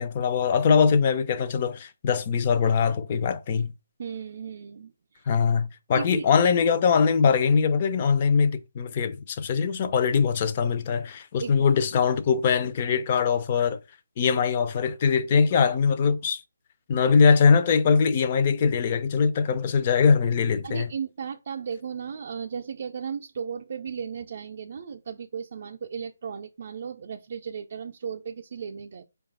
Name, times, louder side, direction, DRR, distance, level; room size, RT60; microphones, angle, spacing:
voice 1, 0.0-3.7 5.3-13.8 14.2-16.4 16.9-20.9, left 6 dB, 35° left, 0.5 m, -22 dB
voice 2, 4.0-5.2 5.9-6.3 11.4-11.8 20.6-29.0, right 6 dB, 50° right, 0.4 m, -35 dB
4.5 x 2.3 x 3.9 m
figure-of-eight pair, 150°, 0 cm